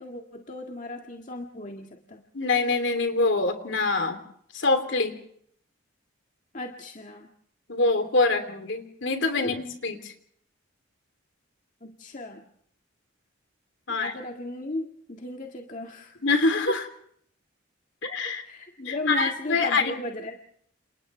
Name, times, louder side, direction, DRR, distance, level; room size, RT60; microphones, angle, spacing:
voice 1, 0.0-2.2 6.5-7.3 9.4-9.6 11.8-12.4 13.9-16.2 16.7-16.8 18.2-20.4, left 1 dB, 40° left, 2 dB, 1.9 m, -36 dB
voice 2, 2.3-4.2 4.5-5.1 7.7-10.1 13.9-14.1 16.2-16.8 18.0-18.4 18.8-19.9, left 3 dB, 65° left, 7 dB, 3.1 m, -25 dB
29.0 x 28.5 x 3.4 m, 0.65 s
head